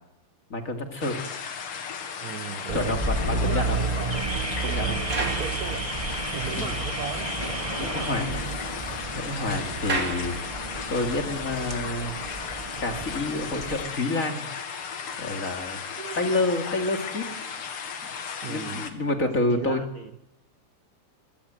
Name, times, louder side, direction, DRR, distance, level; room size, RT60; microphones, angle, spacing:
voice 1, 0.5-1.2 2.7-3.8 4.6-4.9 6.5-6.8 7.8-8.5 9.1-10.6 10.9-12.1 12.8-14.5 15.2-15.8 16.2-17.2 18.5-19.8, left 2 dB, 35° left, 4 dB, 2.7 m, -28 dB
sound 1, 1.0-18.9, left 6 dB, 80° left, 2.7 m, -35 dB
voice 2, 2.2-4.3 4.8-7.6 9.6-9.7 15.7-16.2 18.4-20.1, right 7 dB, 55° right, 9 dB, 1.1 m, -38 dB
Car / Alarm, 2.7-13.8, right 3 dB, 15° right, 1.4 m, -31 dB
sound 2, 3.0-6.7 7.0-7.1 7.4-7.5 7.8-11.1 11.8-11.9, right 3 dB, 40° right, 3.1 m, -37 dB
24.0 x 17.5 x 7.8 m, 0.89 s
omnidirectional pair, 2.4 m